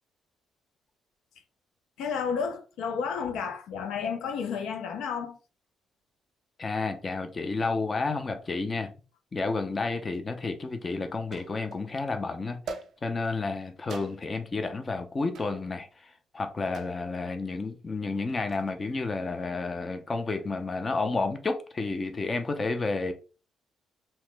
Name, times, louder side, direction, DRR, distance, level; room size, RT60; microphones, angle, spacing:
voice 1, 2.0-5.4, left 6 dB, 85° left, 0.4 m, -31 dB
voice 2, 6.6-8.9 9.3-12.6 13.0-15.9 16.3-23.1, left 3 dB, 30° left, 0.5 m, -31 dB
sound 1, 10.1-10.2 11.3-11.9 12.7-13.3 13.9-14.5 15.3-15.6 16.7-17.1 18.3-18.7, right 4 dB, 65° right, 0.4 m, -42 dB
2.8 x 2.1 x 3.2 m
cardioid pair, 90°, 0 cm